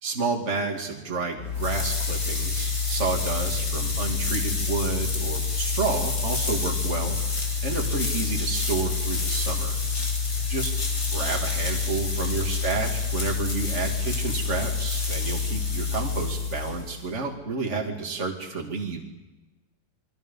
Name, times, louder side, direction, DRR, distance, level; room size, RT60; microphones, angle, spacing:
voice 1, 0.0-9.8 10.5-10.7 11.1-19.0, right 4 dB, 40° right, 1 dB, 2.7 m, -30 dB
sound 1, 1.4-17.1, left 4 dB, 55° left, 4.3 m, -27 dB
28.5 x 23.0 x 5.5 m, 1.1 s
omnidirectional pair, 2.0 m